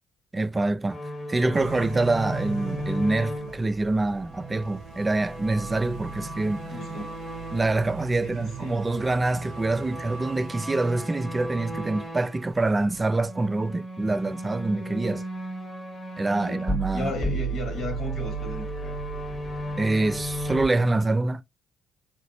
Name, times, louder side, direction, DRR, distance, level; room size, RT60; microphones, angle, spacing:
voice 1, 0.3-1.0 1.3-6.7 7.5-15.2 16.2-17.1 19.8-21.4, right 2 dB, 20° right, 0.3 m, -25 dB
sound 1, 0.9-8.0 8.3-12.4 13.0-20.7, right 1 dB, 20° left, 0.9 m, -35 dB
sound 2, 1.5-13.0, right 7 dB, 80° right, 0.5 m, -40 dB
voice 2, 6.7-7.1 8.2-8.8 16.4-16.7 16.9-19.0, equal, 60° left, 1.7 m, -35 dB
4.9 x 2.1 x 2.7 m
cardioid pair, 90°, 0 cm